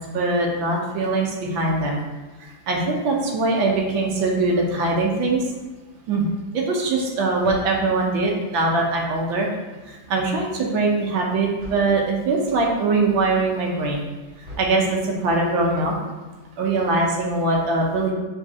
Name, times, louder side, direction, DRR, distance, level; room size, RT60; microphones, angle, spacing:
voice 1, 0.0-2.0 2.7-5.4 6.1-6.3 6.5-9.5 9.9-14.1 14.6-15.9 16.6-18.1, right 3 dB, 80° right, -1 dB, 1.5 m, -22 dB
sound 1, 7.4-8.3 11.6-12.2 14.4-15.3, equal, 40° right, 1.1 m, -41 dB
4.2 x 3.1 x 3.5 m, 1.2 s
omnidirectional pair, 2.1 m